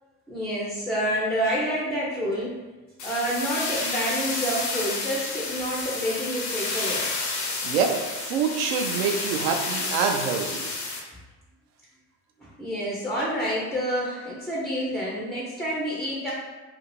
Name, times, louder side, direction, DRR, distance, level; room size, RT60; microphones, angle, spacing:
voice 1, 0.3-2.6 3.0-7.1 12.4-16.3, equal, ahead, -5 dB, 0.3 m, -28 dB
sound 1, 3.0-11.0, left 3 dB, 80° left, 0.7 m, -30 dB
voice 2, 7.6-10.6, right 6 dB, 65° right, 4 dB, 0.5 m, -26 dB
2.6 x 2.4 x 3.0 m, 1.2 s
figure-of-eight pair, 55°, 49 cm